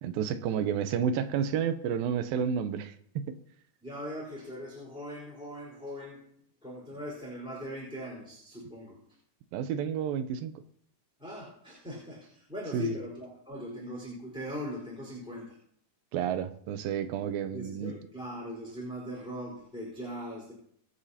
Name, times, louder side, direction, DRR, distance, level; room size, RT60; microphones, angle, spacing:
voice 1, 0.0-3.3 9.5-10.6 12.7-12.9 16.1-17.9, right 8 dB, 85° right, 10 dB, 2.6 m, -31 dB
voice 2, 3.8-6.2 6.6-9.0 11.2-15.6 17.5-20.5, left 1 dB, ahead, -4 dB, 4.0 m, -40 dB
24.0 x 8.3 x 2.9 m, 0.70 s
omnidirectional pair, 4.1 m